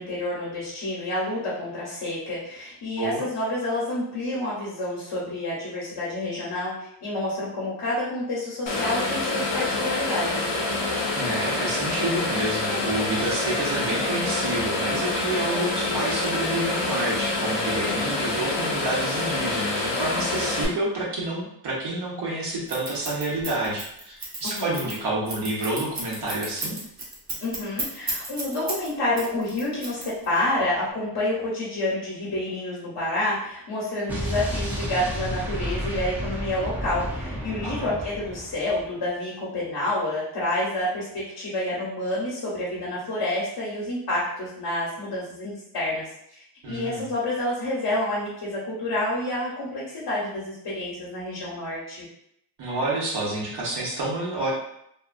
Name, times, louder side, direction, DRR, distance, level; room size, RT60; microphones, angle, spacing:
voice 1, 0.0-10.5 24.4-24.9 27.4-52.1, left 1 dB, 65° left, -7 dB, 1.0 m, -29 dB
sound 1, 8.7-20.7, left 2 dB, 80° left, 0.7 m, -26 dB
voice 2, 11.1-26.8 37.6-37.9 46.6-47.1 52.6-54.5, right 2 dB, 65° right, -4 dB, 1.0 m, -29 dB
Scissors, 22.7-28.9 29.2-30.4, right 2 dB, 40° right, 1.0 m, -33 dB
Explosion, 34.1-38.9, equal, 5° right, 0.6 m, -31 dB
2.7 x 2.4 x 2.4 m, 0.75 s
cardioid pair, 95°, 43 cm